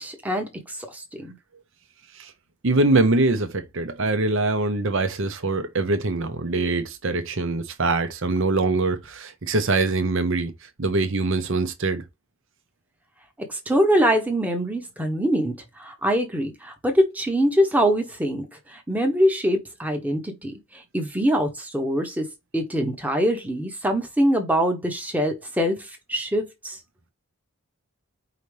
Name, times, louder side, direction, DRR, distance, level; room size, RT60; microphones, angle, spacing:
voice 1, 0.0-1.3 13.5-22.3 22.5-26.8, equal, 5° right, 1.0 m, -24 dB
voice 2, 2.6-12.0, right 2 dB, 60° right, 0.8 m, -23 dB
5.0 x 2.7 x 3.2 m
head